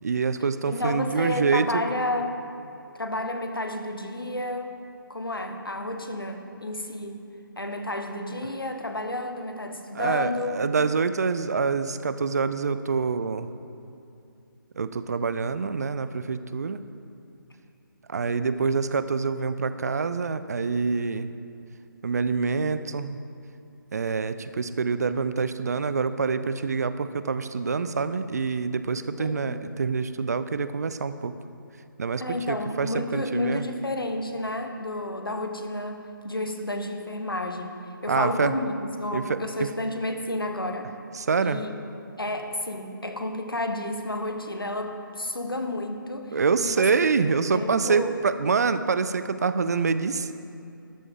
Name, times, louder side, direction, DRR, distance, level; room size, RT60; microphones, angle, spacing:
voice 1, 0.0-1.8 9.9-13.5 14.8-16.8 18.1-21.3 22.0-23.2 23.9-31.3 32.0-33.7 38.1-38.5 39.1-39.7 41.2-41.6 46.3-50.3, right 5 dB, 50° right, 12 dB, 0.5 m, -26 dB
voice 2, 0.7-2.4 2.9-4.8 5.1-7.2 7.6-10.7 29.2-29.6 32.2-40.9 41.4-41.8 42.2-46.9 47.2-48.2, left 1 dB, 85° left, 5 dB, 1.3 m, -31 dB
13.0 x 13.0 x 3.7 m, 2.6 s
figure-of-eight pair, 145°, 12 cm